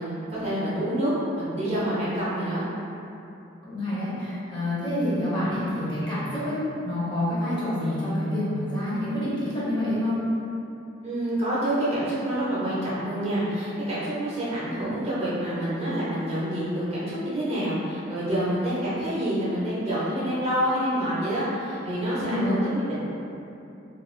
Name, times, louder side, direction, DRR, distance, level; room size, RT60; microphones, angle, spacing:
voice 1, 0.0-2.7 11.0-23.1, right 1 dB, 30° right, -10 dB, 0.6 m, -27 dB
voice 2, 3.6-6.6 6.8-10.2 22.1-22.6, left 1 dB, 25° left, -10 dB, 0.7 m, -27 dB
2.4 x 2.3 x 3.0 m, 2.8 s
head